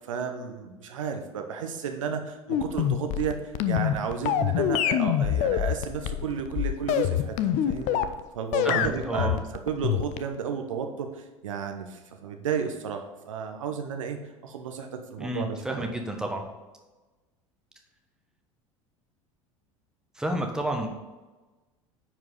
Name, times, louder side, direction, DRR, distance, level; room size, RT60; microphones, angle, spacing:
voice 1, 0.1-7.4 7.7-8.0 8.3-14.2 14.4-15.9, right 6 dB, 70° right, 5 dB, 1.0 m, -33 dB
sound 1, 2.5-8.2 8.5-10.4, left 10 dB, 45° left, 0.6 m, -25 dB
voice 2, 8.6-9.4 15.2-16.4 20.1-20.9, right 1 dB, 5° right, 2 dB, 1.3 m, -30 dB
9.9 x 4.7 x 3.9 m, 1.2 s
figure-of-eight pair, 70°, 17 cm